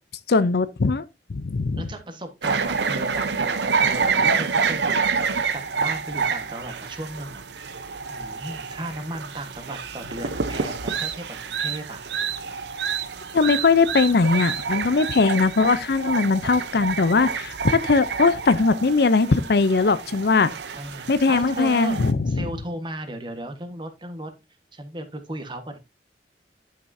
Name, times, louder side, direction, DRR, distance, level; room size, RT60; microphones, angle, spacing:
voice 1, 0.3-1.0 1.3-1.8 13.3-20.5 21.1-22.5, left 4 dB, 60° left, 0.6 m, -20 dB
voice 2, 1.8-12.0 20.7-24.3 24.7-25.8, right 1 dB, 25° right, 1.3 m, -36 dB
sound 1, 2.4-22.1, right 5 dB, 75° right, 0.7 m, -28 dB
10.5 x 6.0 x 2.7 m
head